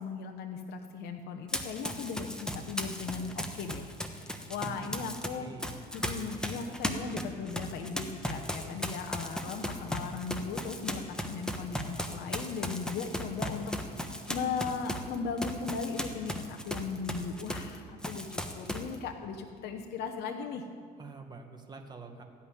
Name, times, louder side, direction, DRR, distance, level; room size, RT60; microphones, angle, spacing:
voice 1, 0.0-5.5 5.9-20.6, left 5 dB, 75° left, 4 dB, 1.0 m, -38 dB
Run, 1.5-5.3 5.6-17.8 18.0-19.0, equal, 5° left, 1.1 m, -36 dB
voice 2, 4.6-5.7 21.0-22.2, right 4 dB, 25° right, 4 dB, 1.6 m, -47 dB
15.0 x 5.8 x 9.9 m, 2.2 s
cardioid pair, 110°, 17 cm